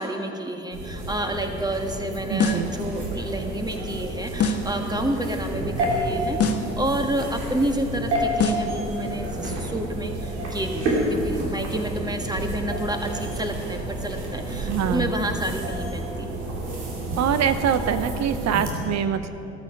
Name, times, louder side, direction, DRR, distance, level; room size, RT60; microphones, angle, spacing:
voice 1, 0.0-16.3, right 1 dB, 10° right, 4 dB, 1.8 m, -29 dB
sound 1, 0.7-18.7, right 1 dB, 80° right, 2.5 m, -30 dB
voice 2, 2.3-2.7 14.6-15.1 17.2-19.3, right 8 dB, 50° right, 11 dB, 0.8 m, -24 dB
sound 2, 2.4-2.8 4.4-4.8 6.4-6.8 8.4-8.8, left 4 dB, 45° left, 1.2 m, -24 dB
14.0 x 13.0 x 5.4 m, 2.8 s
hypercardioid pair, 50°, 34 cm